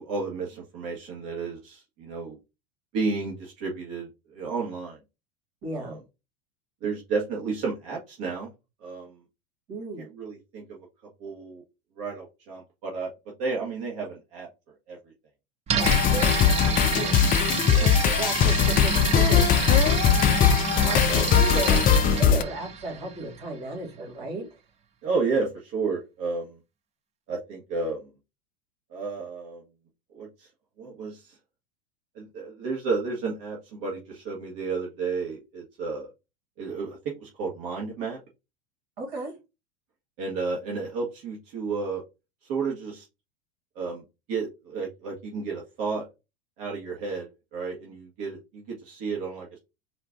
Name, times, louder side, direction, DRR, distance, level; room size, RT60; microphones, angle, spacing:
voice 1, 0.0-2.4 2.9-5.0 5.7-6.0 6.8-8.5 8.8-9.2 10.0-10.8 11.2-11.6 12.0-13.1 13.4-14.5 14.9-15.1 16.1-16.2 16.9-17.0 17.5-18.1 20.1-20.5 21.0-21.3 25.0-26.6 27.3-28.1 28.9-29.6 30.1-30.5 30.8-31.4 32.1-36.1 36.6-38.2 40.2-42.0 42.4-43.1 43.7-46.1 46.6-49.6, right 4 dB, 50° right, -2 dB, 1.6 m, -32 dB
voice 2, 5.6-6.0 9.7-10.0 15.7-16.3 16.6-17.2 17.8-19.7 20.8-24.5 39.0-39.3, right 3 dB, 70° right, -1 dB, 2.4 m, -34 dB
sound 1, 15.7-23.5, right 7 dB, 20° right, 0.5 m, -29 dB
sound 2, 15.8-22.4, left 8 dB, 30° left, 0.5 m, -20 dB
4.4 x 2.5 x 3.7 m, 0.25 s
hypercardioid pair, 100°, 31 cm